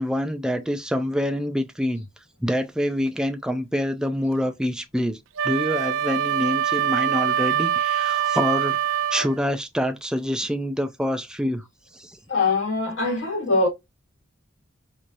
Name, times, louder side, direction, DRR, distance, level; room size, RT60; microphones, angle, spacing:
voice 1, 0.0-2.1 2.4-5.2 5.4-8.8 9.1-11.7 11.9-12.2, equal, 5° right, 0.3 m, -26 dB
Wind instrument woodwind instrument, 5.4-9.4, right 9 dB, 75° right, 0.4 m, -24 dB
voice 2, 12.3-13.7, left 3 dB, 70° left, 1.8 m, -22 dB
4.6 x 2.7 x 2.6 m
head